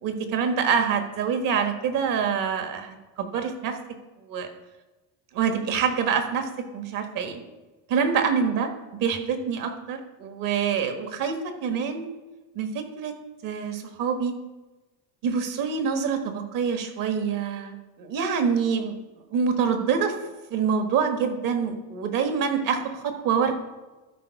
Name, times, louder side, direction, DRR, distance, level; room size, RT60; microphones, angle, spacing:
voice 1, 0.0-3.8 4.3-4.5 5.3-7.4 7.9-8.7 9.0-12.1 12.5-13.1 13.4-14.3 15.2-19.0 19.3-20.1 20.5-23.5, right 6 dB, 55° right, 6 dB, 1.5 m, -26 dB
12.5 x 4.4 x 5.8 m, 1.1 s
cardioid pair, 140°, 40 cm